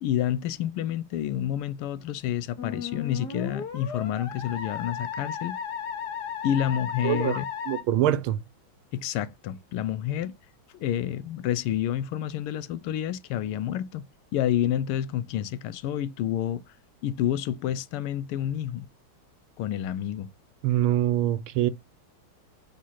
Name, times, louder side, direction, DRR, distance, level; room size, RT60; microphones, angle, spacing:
voice 1, 0.0-5.6 6.4-7.5 8.9-10.4 10.8-14.1 14.3-16.6 17.0-18.9 19.6-20.3, left 11 dB, 90° left, 1.6 m, -29 dB
Musical instrument, 2.6-7.8, left 7 dB, 50° left, 1.9 m, -35 dB
voice 2, 7.0-8.4 20.6-21.7, right 12 dB, 75° right, 1.5 m, -24 dB
7.3 x 3.6 x 5.7 m
omnidirectional pair, 2.4 m